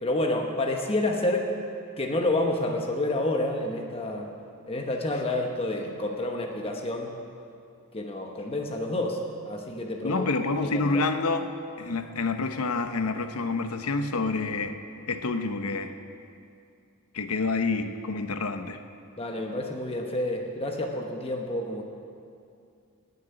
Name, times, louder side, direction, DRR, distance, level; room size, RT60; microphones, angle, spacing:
voice 1, 0.0-1.5 2.0-4.3 4.7-7.1 7.9-10.3 10.6-11.0 11.9-12.0 19.2-21.8, left 1 dB, 25° left, 2 dB, 1.0 m, -29 dB
voice 2, 10.0-11.5 11.8-14.7 15.1-15.9 17.1-18.8, left 3 dB, 90° left, 8 dB, 0.9 m, -28 dB
19.0 x 6.7 x 7.8 m, 2.5 s
head